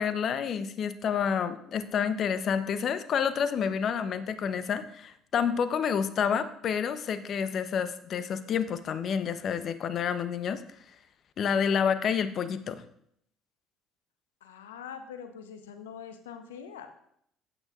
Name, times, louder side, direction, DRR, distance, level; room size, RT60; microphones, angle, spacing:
voice 1, 0.0-10.6 11.4-12.8, left 7 dB, 50° left, 12 dB, 0.8 m, -29 dB
voice 2, 14.4-16.9, left 7 dB, 85° left, 7 dB, 1.0 m, -43 dB
15.0 x 8.9 x 2.5 m, 0.70 s
hypercardioid pair, 55°, 0 cm